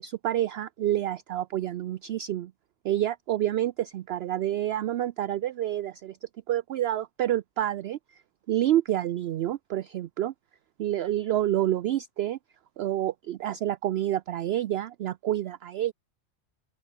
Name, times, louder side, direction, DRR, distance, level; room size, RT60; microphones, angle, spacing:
voice 1, 0.0-2.5 2.8-6.2 6.5-8.2 8.5-10.3 10.8-12.4 12.8-15.9, right 12 dB, 65° right, 0.7 m, -28 dB
open air
omnidirectional pair, 1.3 m